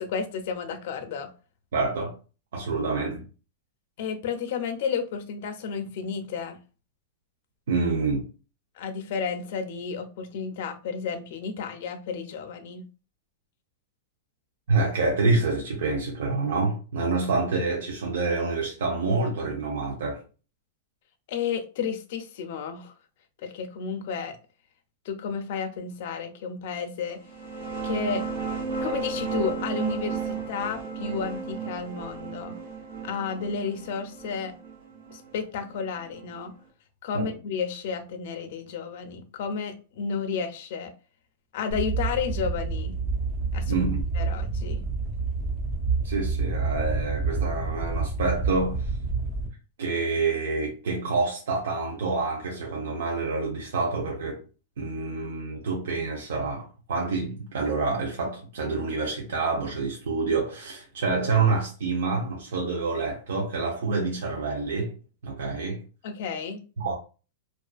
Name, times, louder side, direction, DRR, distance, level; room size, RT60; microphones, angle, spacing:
voice 1, 0.0-1.3 4.0-6.6 8.8-12.8 21.3-22.9 23.4-24.4 25.0-27.2 27.8-28.2 28.8-32.5 33.0-34.5 35.1-36.5 37.0-40.9 41.5-43.0 43.5-43.8 44.2-44.8 66.0-66.6, left 6 dB, 55° left, 0.4 m, -32 dB
voice 2, 1.7-2.2 2.5-3.2 7.7-8.2 14.7-20.2 37.1-37.3 43.7-44.0 46.0-48.9 49.8-54.4 54.8-64.9 65.2-65.8 66.8-66.9, right 3 dB, 90° right, 0.6 m, -27 dB
sound 1, 27.2-36.5, right 5 dB, 60° right, 1.1 m, -34 dB
sound 2, 41.7-49.5, right 4 dB, 10° right, 0.5 m, -28 dB
2.4 x 2.4 x 2.4 m
supercardioid pair, 165°, 0 cm